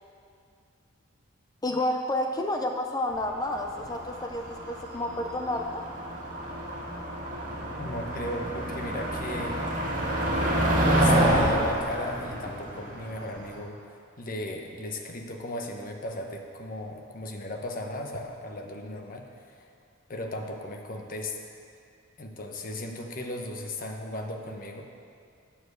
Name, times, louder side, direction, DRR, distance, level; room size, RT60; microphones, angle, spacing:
voice 1, 1.6-5.8, left 1 dB, 15° left, 4 dB, 0.4 m, -30 dB
Motor vehicle (road), 3.2-13.5, right 1 dB, 40° right, 2.0 m, -28 dB
voice 2, 7.8-9.6 10.3-19.7 20.1-21.5 22.2-24.8, left 1 dB, 40° left, 3 dB, 0.9 m, -36 dB
8.9 x 7.2 x 6.5 m, 2.4 s
head